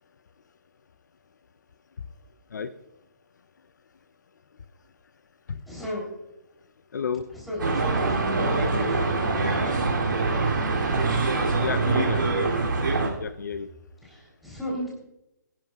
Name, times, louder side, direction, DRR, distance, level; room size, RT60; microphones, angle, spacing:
voice 1, 5.7-6.1 7.5-8.3 8.7-10.1 14.0-14.9, equal, ahead, -4 dB, 3.5 m, -35 dB
voice 2, 6.9-7.2 8.6-8.7 11.6-12.6 13.2-13.7, left 6 dB, 65° left, 10 dB, 0.7 m, -31 dB
sound 1, 7.6-13.1, right 3 dB, 80° right, 3.0 m, -24 dB
23.0 x 10.5 x 2.4 m, 0.87 s
hypercardioid pair, 160°, 10 cm